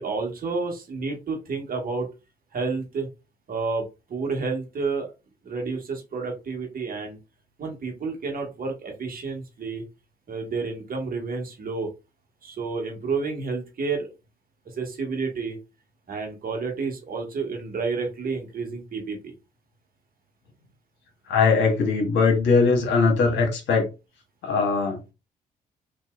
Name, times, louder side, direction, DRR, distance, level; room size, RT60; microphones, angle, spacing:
voice 1, 0.0-2.1 2.5-3.1 3.5-3.8 4.1-5.1 5.4-7.2 7.6-9.8 10.3-11.9 12.4-14.1 14.8-15.6 16.1-19.3, right 4 dB, 45° right, 1.2 m, -30 dB
voice 2, 21.3-23.9 24.4-25.1, left 4 dB, 65° left, 1.1 m, -21 dB
2.9 x 2.5 x 2.4 m
hypercardioid pair, 45°, 20 cm